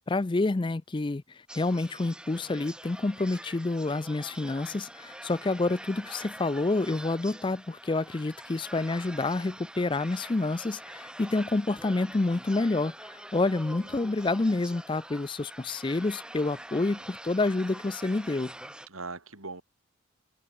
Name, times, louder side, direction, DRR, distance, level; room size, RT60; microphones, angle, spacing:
voice 1, 0.1-18.5, left 2 dB, 20° left, 0.4 m, -28 dB
sound 1, 1.5-18.9, right 1 dB, 5° right, 6.7 m, -45 dB
voice 2, 18.9-19.6, right 3 dB, 75° right, 4.1 m, -42 dB
open air
head